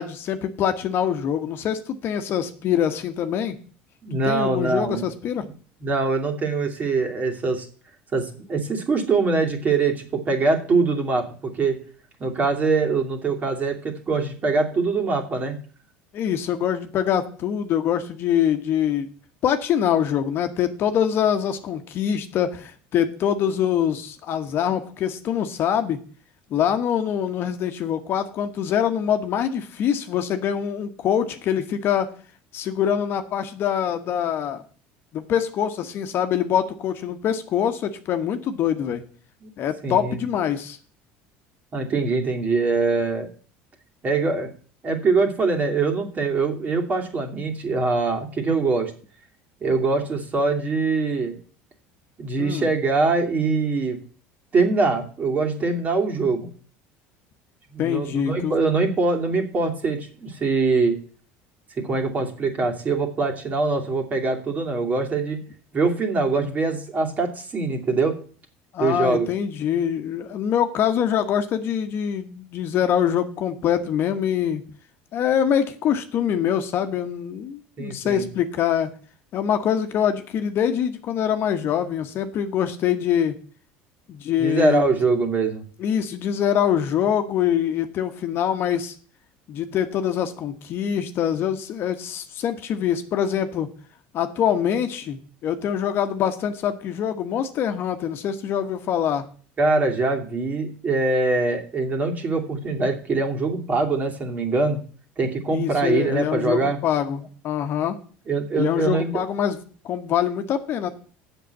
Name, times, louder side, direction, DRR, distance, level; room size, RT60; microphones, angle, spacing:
voice 1, 0.0-3.5 4.2-5.5 16.1-19.1 19.4-26.0 26.5-32.1 32.5-34.6 35.1-39.0 39.6-40.8 52.4-52.7 57.8-58.5 68.7-74.6 75.1-78.9 79.3-83.4 84.1-84.8 85.8-88.9 89.5-93.7 94.1-99.2 105.5-108.0 108.5-110.9, left 9 dB, 50° left, 8 dB, 1.3 m, -24 dB
voice 2, 4.0-5.0 5.8-7.7 8.1-11.8 12.2-15.5 39.4-39.5 39.8-40.2 41.7-43.3 44.0-44.5 44.8-48.9 49.6-51.4 52.2-54.0 54.5-56.5 57.7-61.0 61.8-65.4 65.7-68.2 68.8-69.3 77.8-78.3 84.4-85.6 99.6-104.8 105.2-106.8 108.3-109.2, right 3 dB, 30° right, 3 dB, 2.6 m, -23 dB
7.8 x 6.7 x 8.2 m, 0.42 s
supercardioid pair, 115°, 5 cm